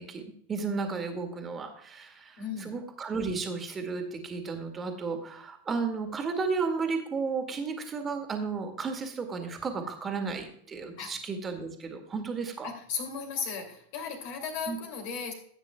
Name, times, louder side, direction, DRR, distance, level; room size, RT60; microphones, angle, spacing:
voice 1, 0.0-12.7 14.7-14.8, right 4 dB, 20° right, 4 dB, 2.0 m, -33 dB
voice 2, 2.4-2.8 11.0-11.2 12.6-15.3, left 6 dB, 45° left, 5 dB, 2.7 m, -36 dB
15.0 x 8.9 x 2.3 m, 0.63 s
figure-of-eight pair, 90°, 0 cm